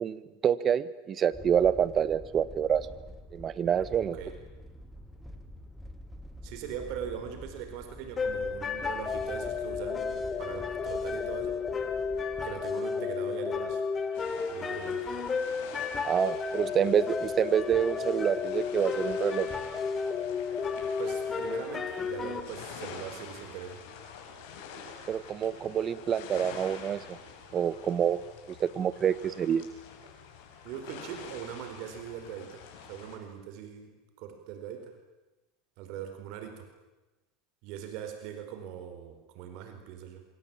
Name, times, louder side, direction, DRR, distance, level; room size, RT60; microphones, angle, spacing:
voice 1, 0.0-2.9 3.3-4.2 16.0-19.5 25.1-27.2 27.5-28.2 28.5-29.6, right 8 dB, 30° right, 15 dB, 1.4 m, -27 dB
sound 1, 1.3-12.8, left 1 dB, ahead, 2.8 m, -47 dB
voice 2, 6.4-11.6 12.4-13.8 14.5-15.1 21.0-23.8 30.6-34.9 35.8-36.7 37.6-40.2, right 9 dB, 55° right, 6 dB, 4.5 m, -41 dB
sound 2, 8.2-22.4, left 5 dB, 20° left, 3.2 m, -32 dB
sound 3, 14.1-33.2, left 6 dB, 65° left, 7.9 m, -47 dB
27.0 x 24.5 x 9.0 m, 1.1 s
supercardioid pair, 140°, 0 cm